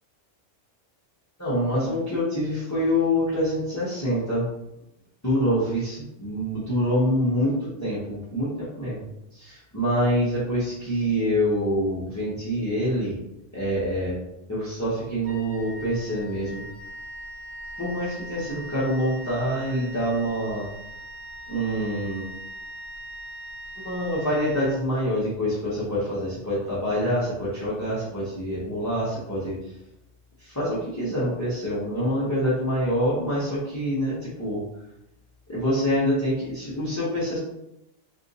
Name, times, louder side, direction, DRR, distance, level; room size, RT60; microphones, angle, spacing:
voice 1, 1.4-4.4 5.2-9.1 9.3-13.2 13.5-14.1 14.5-16.6 17.8-20.7 21.5-22.3 23.8-29.6 30.4-34.6 35.5-37.4, equal, 15° left, -9 dB, 0.7 m, -26 dB
Wind instrument woodwind instrument, 15.2-25.3, right 1 dB, 60° right, 0.7 m, -41 dB
2.6 x 2.5 x 3.9 m, 0.86 s
omnidirectional pair, 1.3 m